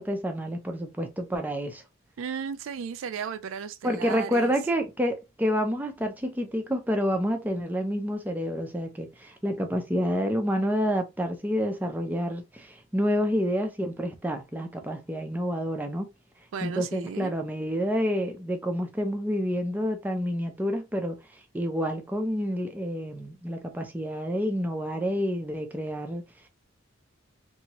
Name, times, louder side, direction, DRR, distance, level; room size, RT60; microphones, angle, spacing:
voice 1, 0.0-1.8 3.8-16.1 16.6-21.2 21.5-26.2, equal, 10° right, 0.4 m, -28 dB
voice 2, 2.2-4.5 16.5-17.4, right 7 dB, 70° right, 0.3 m, -35 dB
2.9 x 2.7 x 2.8 m
head